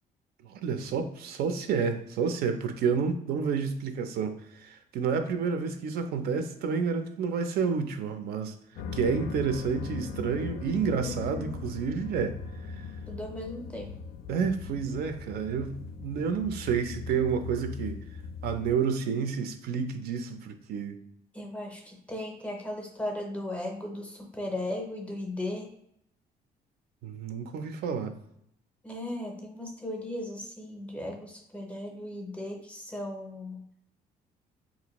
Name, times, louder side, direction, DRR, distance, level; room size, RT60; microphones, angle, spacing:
voice 1, 0.4-8.5 8.9-12.3 12.7-12.8 14.3-15.7 16.0-18.0 18.4-21.0 27.0-28.1, right 6 dB, 75° right, 7 dB, 0.5 m, -30 dB
sound 1, 8.8-18.7, left 5 dB, 75° left, 0.4 m, -39 dB
voice 2, 10.8-11.5 13.1-13.9 21.3-25.7 28.8-33.6, left 1 dB, 10° left, 1 dB, 0.5 m, -37 dB
4.1 x 2.5 x 2.9 m, 0.75 s
cardioid pair, 175°, 16 cm